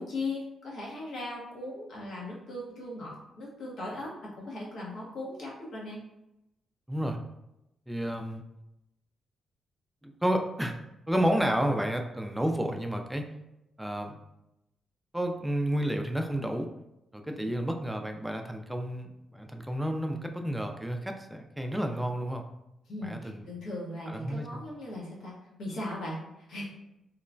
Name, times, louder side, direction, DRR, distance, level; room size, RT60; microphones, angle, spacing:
voice 1, 0.0-6.0 17.2-17.5 22.9-25.3 25.6-26.7, left 2 dB, 75° left, -4 dB, 0.9 m, -38 dB
voice 2, 7.9-8.4 10.0-10.8 11.1-13.2 13.8-14.2 15.1-16.7 17.1-22.4 23.0-23.4 24.1-24.5, equal, 5° right, 4 dB, 0.3 m, -31 dB
3.0 x 2.1 x 2.5 m, 0.90 s
cardioid pair, 85°, 0 cm